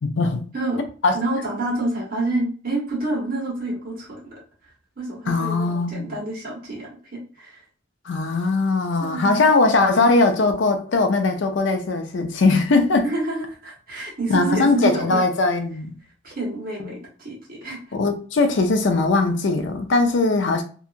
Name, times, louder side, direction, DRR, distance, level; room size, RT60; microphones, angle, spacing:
voice 1, 0.0-0.4 1.0-1.1 5.3-6.1 8.1-13.0 14.3-15.9 17.9-20.6, left 3 dB, 70° left, 0.5 m, -20 dB
voice 2, 1.1-4.4 5.0-7.6 9.0-9.4 13.0-15.2 16.2-17.8, right 2 dB, 50° right, 1.2 m, -28 dB
2.8 x 2.4 x 2.4 m
head